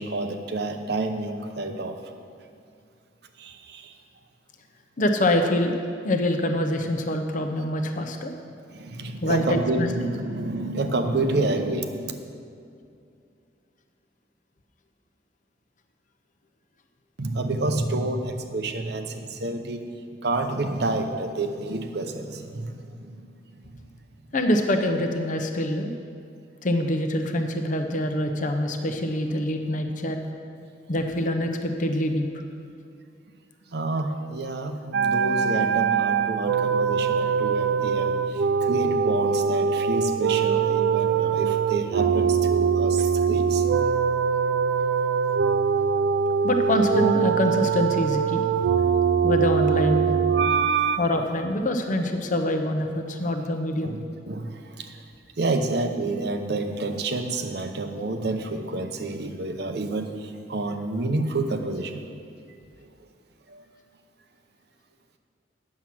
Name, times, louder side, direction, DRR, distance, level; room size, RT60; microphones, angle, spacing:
voice 1, 0.0-2.0 3.4-3.9 8.7-12.2 17.2-19.8 20.2-23.8 33.7-43.7 50.8-51.0 53.8-55.0 55.4-62.0 63.5-63.7, right 2 dB, 65° right, 7 dB, 0.8 m, -29 dB
voice 2, 5.0-5.7 6.0-8.3 9.2-9.9 24.3-25.9 26.6-30.2 30.9-32.3 46.4-48.5 49.2-50.1 51.0-54.0, left 1 dB, 45° left, 5 dB, 0.8 m, -25 dB
sound 1, 34.9-51.0, right 6 dB, 80° right, 0.4 m, -23 dB
9.7 x 7.4 x 5.9 m, 2.4 s
head